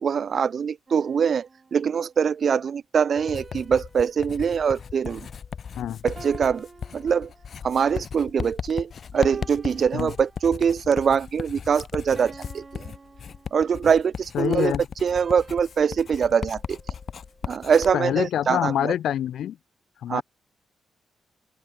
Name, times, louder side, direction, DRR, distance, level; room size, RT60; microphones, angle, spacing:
voice 1, 0.0-5.3 6.0-6.7 6.9-7.3 7.6-12.9 13.5-14.7 15.0-16.8 17.5-19.0 20.1-20.2, right 7 dB, 40° right, 0.4 m, -23 dB
sound 1, 0.9-2.2 3.2-5.7 6.2-7.9 8.4-8.7 9.2-10.7 11.2-11.5 12.2-14.1 15.2-17.5, right 4 dB, 25° right, 5.6 m, -48 dB
Writing, 3.3-17.9, left 7 dB, 40° left, 4.0 m, -37 dB
voice 2, 14.3-14.8 17.9-19.6 20.0-20.2, left 10 dB, 75° left, 1.3 m, -26 dB
open air
wide cardioid pair, 170°, 0 cm